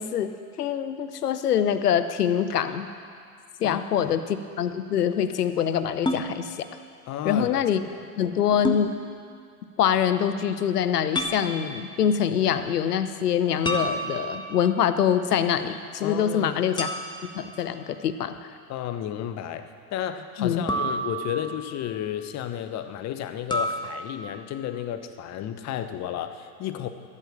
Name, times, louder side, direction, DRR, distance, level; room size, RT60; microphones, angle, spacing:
voice 1, 0.0-2.9 3.6-6.6 7.2-7.8 8.2-9.0 9.8-16.9 17.2-18.5 20.4-20.6, left 8 dB, 80° left, 11 dB, 1.0 m, -24 dB
voice 2, 3.6-4.2 7.1-7.9 16.0-16.6 18.7-26.9, left 10 dB, 35° left, 9 dB, 1.1 m, -33 dB
sound 1, 6.1-6.3 8.6-8.9 11.1-11.4 13.6-14.6 16.8-17.4 20.7-21.6 23.5-23.9, equal, 10° left, 1.5 m, -28 dB
14.0 x 11.0 x 7.4 m, 2.2 s
hypercardioid pair, 90°, 46 cm